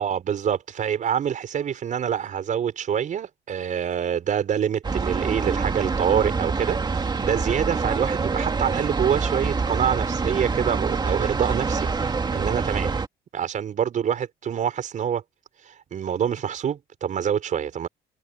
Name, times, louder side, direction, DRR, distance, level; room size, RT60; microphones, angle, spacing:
voice 1, 0.0-12.9 13.3-15.2 15.6-17.9, right 8 dB, 50° right, 5.6 m, -26 dB
sound 1, 4.8-13.1, right 4 dB, 25° right, 2.3 m, -26 dB
cardioid pair, 110°, 17 cm